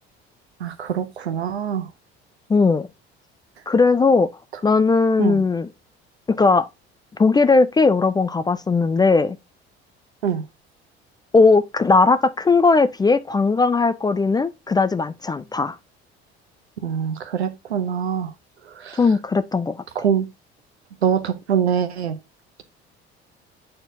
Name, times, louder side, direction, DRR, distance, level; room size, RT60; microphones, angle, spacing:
voice 1, 0.6-1.9 5.2-5.4 10.2-10.4 16.8-18.3 18.8-19.0 20.0-20.3 21.0-22.2, right 8 dB, 85° right, 0.7 m, -24 dB
voice 2, 2.5-2.9 3.7-4.3 4.6-5.7 6.3-6.7 7.2-9.4 11.3-15.8 19.0-19.8, left 4 dB, 15° left, 0.3 m, -18 dB
8.6 x 4.4 x 2.6 m
figure-of-eight pair, 60°, 31 cm